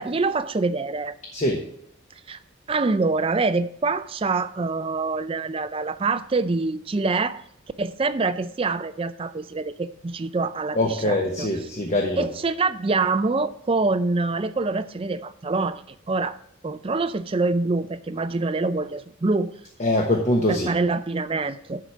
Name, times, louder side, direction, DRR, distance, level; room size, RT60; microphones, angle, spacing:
voice 1, 0.0-1.1 2.3-2.4 2.7-7.4 7.8-10.8 11.0-11.5 12.2-16.4 16.6-19.5 20.5-21.8, right 3 dB, 25° right, 13 dB, 0.4 m, -25 dB
voice 2, 10.7-12.3 19.8-20.7, left 1 dB, 35° left, 1 dB, 1.0 m, -23 dB
11.0 x 4.8 x 5.7 m, 0.72 s
head